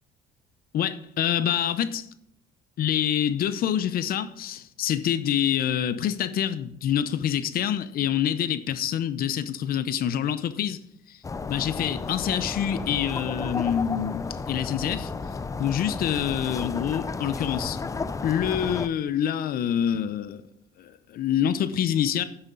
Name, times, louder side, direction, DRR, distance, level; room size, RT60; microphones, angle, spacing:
voice 1, 0.7-2.1 2.8-10.8 11.1-11.2 11.5-15.1 15.6-17.8 18.2-20.4 20.8-22.2, left 9 dB, 60° left, 0.7 m, -26 dB
sound 1, 11.2-18.9, left 4 dB, 20° left, 0.5 m, -33 dB
10.0 x 8.7 x 3.9 m
cardioid pair, 110°, 17 cm